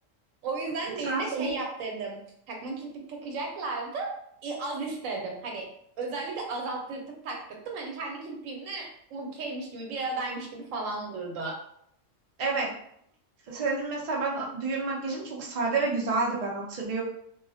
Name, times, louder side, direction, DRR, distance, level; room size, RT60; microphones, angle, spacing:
voice 1, 0.4-2.2 2.5-4.1 4.4-5.7 6.0-11.6, right 3 dB, 90° right, 1 dB, 1.0 m, -34 dB
voice 2, 1.0-1.5 12.4-12.7 13.5-17.0, right 3 dB, 55° right, -2 dB, 0.4 m, -29 dB
2.3 x 2.0 x 2.6 m, 0.70 s
omnidirectional pair, 1.3 m